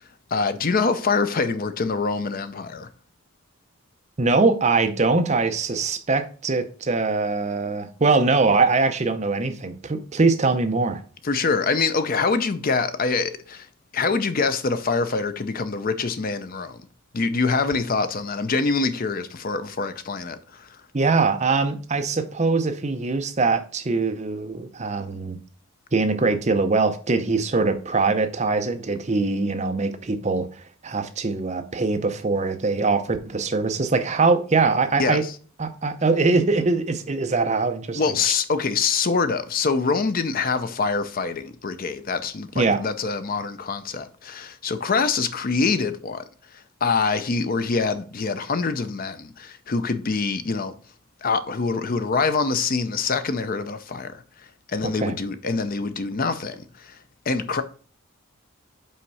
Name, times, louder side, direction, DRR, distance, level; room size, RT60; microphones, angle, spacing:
voice 1, 0.3-2.9 11.2-13.7 13.9-16.8 17.1-20.8 35.0-35.3 38.0-46.2 46.5-50.7 51.2-54.2 54.7-57.0 57.3-57.6, left 4 dB, 45° left, 0.6 m, -25 dB
voice 2, 4.2-11.0 20.9-25.4 25.9-30.5 30.8-35.2 35.6-38.0 42.6-42.8 54.8-55.2, right 3 dB, 35° right, 0.6 m, -22 dB
5.6 x 4.4 x 5.4 m
head